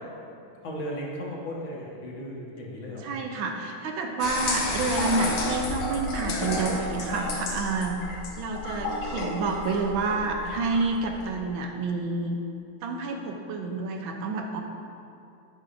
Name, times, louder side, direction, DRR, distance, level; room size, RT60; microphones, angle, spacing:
voice 1, 0.6-3.1, equal, 65° left, -3 dB, 2.0 m, -36 dB
voice 2, 3.0-8.0 8.4-12.4 12.8-14.6, right 3 dB, 75° right, 3 dB, 1.3 m, -29 dB
sound 1, 4.2-11.4, left 2 dB, 80° left, 1.9 m, -31 dB
10.5 x 8.2 x 2.6 m, 2.6 s
omnidirectional pair, 2.4 m